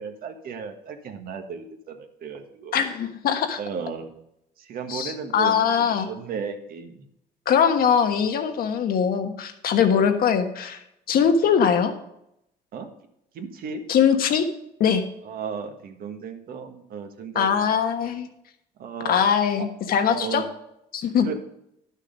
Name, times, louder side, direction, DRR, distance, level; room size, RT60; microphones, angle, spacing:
voice 1, 0.0-2.7 3.6-4.1 4.6-7.1 9.7-10.1 12.7-12.9 13.3-13.8 15.2-17.8 18.8-19.2 19.6-19.7 20.1-20.5 21.2-21.3, right 6 dB, 60° right, 5 dB, 1.6 m, -35 dB
voice 2, 2.7-3.6 4.9-6.1 7.5-10.8 11.1-11.9 13.9-14.5 14.8-15.0 17.3-18.3 19.1-20.4 20.9-21.3, left 7 dB, 60° left, 7 dB, 1.4 m, -21 dB
11.5 x 6.6 x 5.2 m, 0.79 s
cardioid pair, 110°, 17 cm